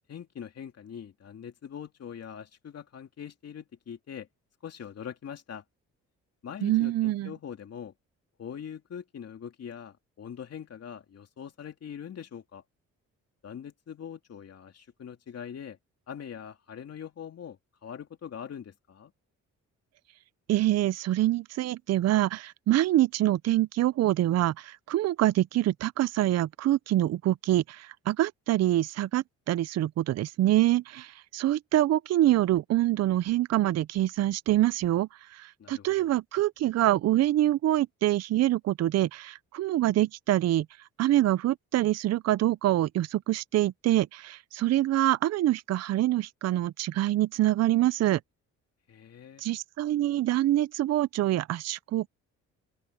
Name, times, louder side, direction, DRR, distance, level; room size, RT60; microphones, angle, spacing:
voice 1, 0.1-4.3 4.6-5.6 6.4-7.9 8.4-12.6 13.4-15.8 16.1-19.1 35.6-36.1 48.9-49.4, left 8 dB, 55° left, 2.8 m, -42 dB
voice 2, 6.6-7.3 20.5-40.7 41.0-48.2 49.4-52.1, right 14 dB, 55° right, 0.5 m, -25 dB
open air
cardioid pair, 90°, 30 cm